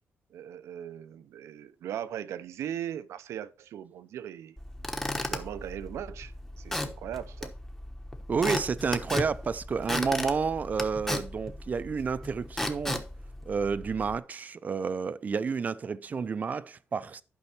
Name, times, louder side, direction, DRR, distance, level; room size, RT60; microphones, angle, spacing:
voice 1, 0.3-4.6 5.1-7.5, right 10 dB, 85° right, 0.7 m, -39 dB
Squeak / Wood, 4.6-14.2, left 1 dB, 10° left, 1.1 m, -36 dB
voice 2, 8.3-13.0 13.5-17.2, right 5 dB, 35° right, 0.5 m, -30 dB
11.5 x 5.4 x 4.3 m
cardioid pair, 135°, 5 cm